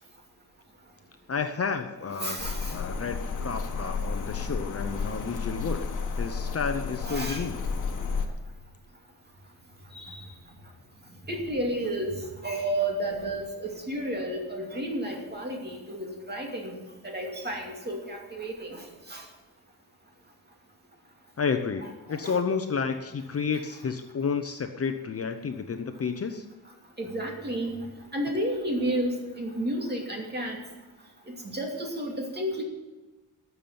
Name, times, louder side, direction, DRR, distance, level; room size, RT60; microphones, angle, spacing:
voice 1, 1.3-2.4 2.7-7.6 21.4-26.5, left 5 dB, 40° left, 6 dB, 0.8 m, -31 dB
voice 2, 2.2-2.8 7.0-7.5 9.9-10.2 11.3-19.2 22.1-22.4 27.0-27.8 28.1-30.6 31.3-32.6, right 1 dB, 25° right, 1 dB, 2.5 m, -32 dB
sound 1, 2.4-8.3, left 4 dB, 55° left, 1.5 m, -32 dB
12.5 x 7.0 x 9.2 m, 1.2 s
wide cardioid pair, 160°, 37 cm